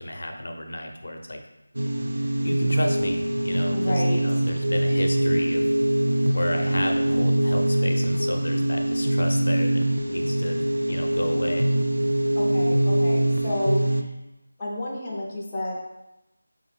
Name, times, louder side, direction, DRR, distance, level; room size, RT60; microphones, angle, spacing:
voice 1, 0.0-1.4 2.4-5.6 6.3-10.6 10.8-11.7, left 1 dB, 55° left, 3 dB, 0.5 m, -32 dB
sound 1, 1.7-14.0, right 1 dB, 85° right, 0.4 m, -23 dB
voice 2, 3.7-4.2 12.4-14.1 14.6-15.7, left 1 dB, 10° left, -8 dB, 0.5 m, -30 dB
5.3 x 2.4 x 3.2 m, 0.95 s
figure-of-eight pair, 175°, 0 cm